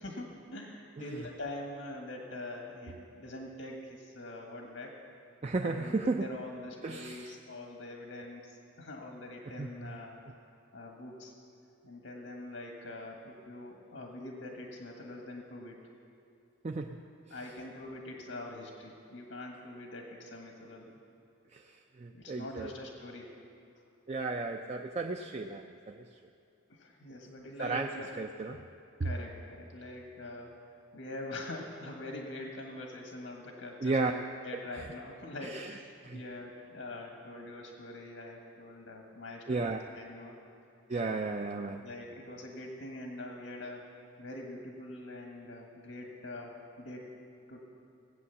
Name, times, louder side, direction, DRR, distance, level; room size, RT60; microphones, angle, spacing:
voice 1, 0.0-5.0 5.6-10.2 10.7-11.3 11.8-15.8 17.3-20.9 22.1-23.4 26.7-28.1 29.0-30.6 30.9-40.4 40.9-41.3 41.8-43.9 44.2-47.1 47.5-47.6, left 2 dB, 85° left, 1 dB, 1.6 m, -44 dB
voice 2, 1.0-1.3 5.4-6.3 6.8-7.3 9.6-10.0 16.6-17.0 17.3-17.4 21.5-22.7 24.1-26.2 27.6-28.6 29.0-29.1 33.8-34.1 35.4-36.2 39.5-39.8 40.9-41.9, right 3 dB, 35° right, 4 dB, 0.4 m, -34 dB
17.0 x 8.7 x 7.0 m, 2.5 s
head